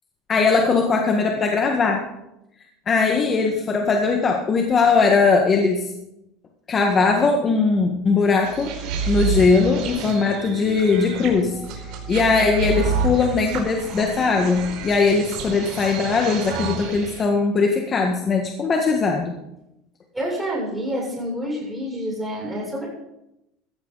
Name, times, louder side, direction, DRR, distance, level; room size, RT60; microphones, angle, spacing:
voice 1, 0.3-2.1 2.8-5.9 6.7-8.7 9.1-11.5 11.8-19.3, left 4 dB, 25° left, 2 dB, 1.7 m, -20 dB
sound 1, 8.4-17.2, right 5 dB, 60° right, 4.9 m, -29 dB
voice 2, 20.1-22.9, equal, 5° right, -4 dB, 7.2 m, -28 dB
16.0 x 13.5 x 4.1 m, 0.87 s
supercardioid pair, 145°, 0 cm